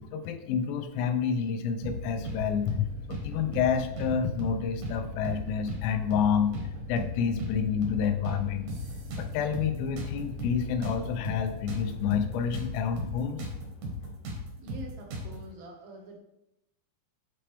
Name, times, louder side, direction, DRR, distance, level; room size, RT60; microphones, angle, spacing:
voice 1, 0.1-6.5 6.9-8.7 9.2-13.5, left 7 dB, 85° left, 8 dB, 3.1 m, -29 dB
sound 1, 1.8-13.2, left 2 dB, 55° left, 1.3 m, -42 dB
sound 2, 1.8-2.4 2.7-2.8 3.1-4.1 4.4-4.6 4.8-5.8 6.1-6.3 6.5-7.6 7.8-8.0 8.3-9.7 10.0-12.7 13.0-13.1 13.4-15.4, equal, 70° right, 1.8 m, -36 dB
voice 2, 14.6-16.2, right 2 dB, 90° right, 0 dB, 3.8 m, -45 dB
8.7 x 4.3 x 3.4 m, 0.86 s
omnidirectional pair, 5.6 m